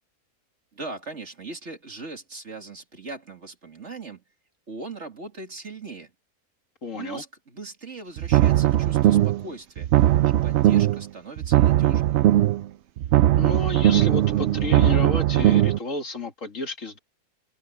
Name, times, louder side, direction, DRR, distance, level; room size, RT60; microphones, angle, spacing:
voice 1, 0.7-4.2 4.7-6.1 6.9-12.2, right 3 dB, 45° right, 2.8 m, -39 dB
voice 2, 6.8-7.2 13.4-17.0, left 2 dB, 55° left, 2.3 m, -31 dB
sound 1, 8.2-9.4 9.8-11.0 11.4-12.6 13.0-15.8, right 13 dB, 70° right, 0.7 m, -19 dB
open air
omnidirectional pair, 1.6 m